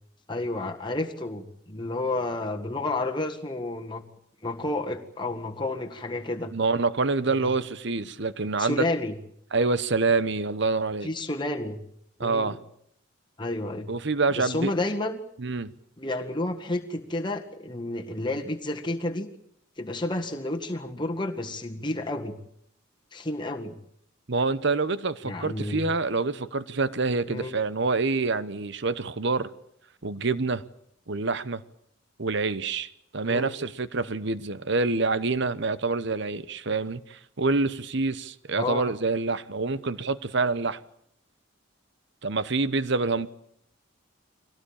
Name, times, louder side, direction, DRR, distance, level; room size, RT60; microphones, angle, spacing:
voice 1, 0.3-4.0 4.4-6.5 7.3-7.5 8.6-9.1 11.0-11.8 12.2-12.6 13.4-13.9 14.3-15.2 16.0-19.3 19.8-22.4 23.1-23.8 25.2-25.9 27.3-27.6 33.3-33.5 38.6-38.9, left 2 dB, 20° left, 1.8 m, -31 dB
voice 2, 6.5-8.8 9.5-11.1 12.2-12.6 13.9-14.7 15.4-15.7 24.3-29.5 30.0-30.6 31.1-31.6 32.2-40.8 42.2-43.3, right 3 dB, 55° right, 1.0 m, -26 dB
23.5 x 17.5 x 8.7 m
head